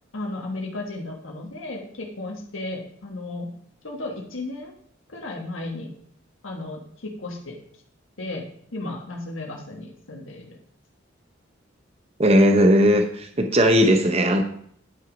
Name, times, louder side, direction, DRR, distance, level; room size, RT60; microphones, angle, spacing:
voice 1, 0.1-3.5 3.8-4.7 5.1-5.9 6.4-7.6 8.2-10.4 13.5-13.6, left 2 dB, 85° left, 0 dB, 1.5 m, -34 dB
voice 2, 12.2-14.4, equal, 30° right, 5 dB, 0.7 m, -17 dB
10.0 x 6.1 x 5.1 m, 0.64 s
head